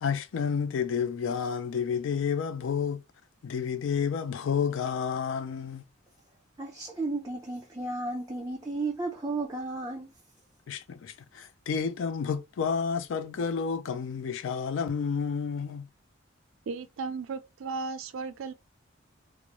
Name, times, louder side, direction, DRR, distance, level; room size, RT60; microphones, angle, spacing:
voice 1, 0.0-3.0 3.4-5.8 10.7-15.9, left 6 dB, 70° left, 0.4 m, -30 dB
voice 2, 6.6-10.1, right 2 dB, 15° right, 0.4 m, -33 dB
voice 3, 16.7-18.5, right 4 dB, 85° right, 0.4 m, -35 dB
2.4 x 2.0 x 2.9 m
head